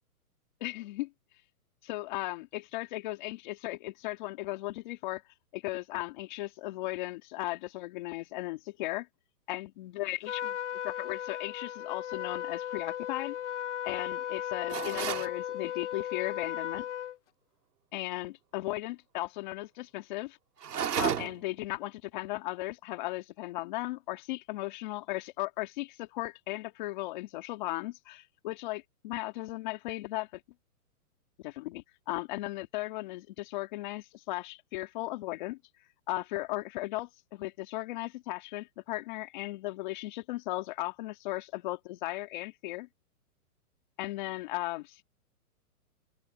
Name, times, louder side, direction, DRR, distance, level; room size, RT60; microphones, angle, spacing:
voice 1, 0.6-1.1 1.8-5.2 5.5-9.1 9.5-10.6 10.8-13.4 13.8-16.9 17.9-20.4 21.0-30.4 31.4-35.6 36.1-42.9 44.0-45.0, left 18 dB, 30° left, 2.6 m, -36 dB
Trumpet, 10.3-17.2, left 10 dB, 50° left, 1.1 m, -36 dB
sound 1, 14.7-15.3 20.6-21.5, right 8 dB, 85° right, 2.8 m, -32 dB
hypercardioid pair, 165°, 46 cm